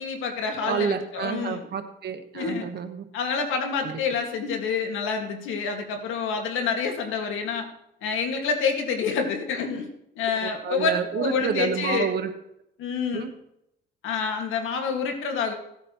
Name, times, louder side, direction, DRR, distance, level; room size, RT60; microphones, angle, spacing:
voice 1, 0.0-1.7 2.3-2.7 3.1-7.7 8.0-9.9 10.2-12.1 12.8-13.2 14.0-15.5, left 5 dB, 90° left, 3 dB, 1.9 m, -27 dB
voice 2, 0.6-3.0 3.8-4.0 10.4-12.3 13.1-13.3, right 7 dB, 55° right, 7 dB, 1.2 m, -29 dB
16.5 x 8.9 x 3.0 m, 0.80 s
cardioid pair, 90°, 20 cm